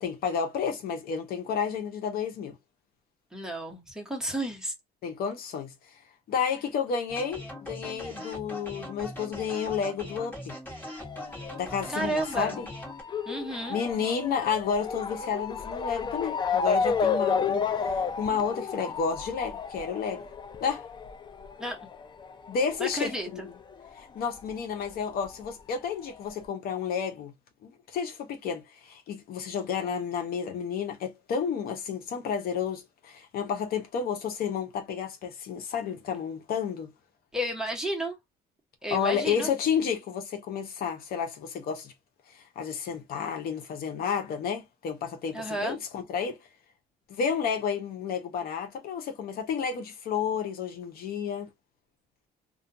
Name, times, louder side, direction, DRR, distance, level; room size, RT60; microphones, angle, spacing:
voice 1, 0.0-2.6 5.0-5.7 6.3-10.5 11.5-12.7 13.7-17.7 17.9-20.2 20.6-20.9 22.5-23.4 24.0-27.3 27.6-36.9 38.9-41.9 42.3-46.4 47.1-51.5, left 6 dB, 65° left, 0.8 m, -31 dB
voice 2, 3.3-4.7 11.9-12.7 13.3-13.8 21.6-21.8 22.8-23.5 37.3-38.2 38.8-39.5 45.3-45.8, right 1 dB, 5° right, 1.0 m, -32 dB
sound 1, 7.1-13.0, left 1 dB, 10° left, 1.3 m, -41 dB
Motor vehicle (road) / Siren, 11.0-24.0 24.3-25.4 26.1-26.2 26.4-26.5, left 5 dB, 25° left, 0.4 m, -32 dB
2.5 x 2.2 x 2.5 m
cardioid pair, 110°, 17 cm